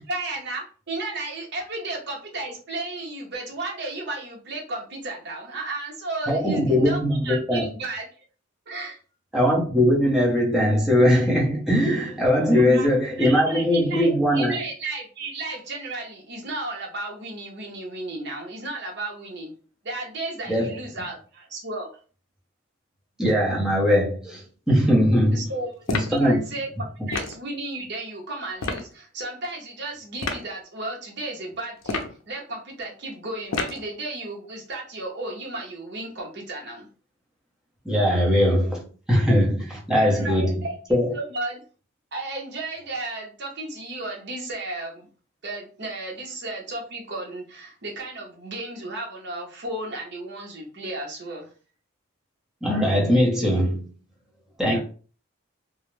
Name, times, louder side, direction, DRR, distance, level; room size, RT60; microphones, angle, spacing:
voice 1, 0.0-8.1 8.7-9.0 12.5-12.9 13.2-19.5 19.8-21.9 25.3-36.9 40.0-40.7 41.1-41.6 42.1-45.1 45.4-51.5 54.7-54.8, right 2 dB, 55° right, 0.8 m, -34 dB
voice 2, 6.3-7.7 9.3-14.6 20.5-20.7 23.2-25.4 25.9-26.4 37.8-40.6 40.9-41.1 52.6-53.9 54.6-54.8, equal, 5° right, 0.7 m, -20 dB
sound 1, 25.9-26.2 27.1-27.4 28.6-28.9 30.2-30.5 31.8-32.2 33.5-33.9, left 3 dB, 75° left, 0.4 m, -29 dB
2.3 x 2.0 x 3.0 m
head